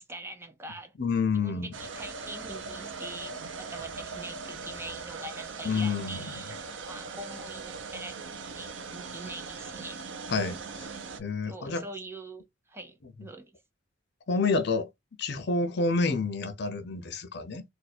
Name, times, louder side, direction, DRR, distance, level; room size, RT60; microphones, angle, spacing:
voice 1, 0.0-0.9 1.3-8.3 8.5-10.1 11.5-13.5, right 2 dB, 15° right, 0.6 m, -43 dB
voice 2, 1.0-1.7 5.6-6.4 10.3-10.6 11.2-11.8 14.3-14.9 15.2-17.6, left 4 dB, 65° left, 0.6 m, -28 dB
sound 1, 1.7-11.2, right 4 dB, 85° right, 0.7 m, -40 dB
2.6 x 2.4 x 4.1 m
head